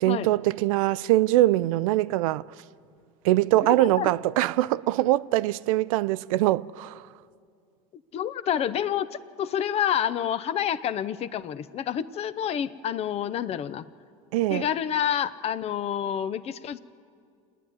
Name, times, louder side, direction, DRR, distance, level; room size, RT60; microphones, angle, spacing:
voice 1, 0.0-2.5 3.2-7.1 14.3-14.7, right 16 dB, 80° right, 0.4 m, -23 dB
voice 2, 3.6-4.1 8.1-9.1 9.4-13.8 14.5-16.8, left 9 dB, 35° left, 0.6 m, -28 dB
28.0 x 10.0 x 9.5 m
supercardioid pair, 120°, 17 cm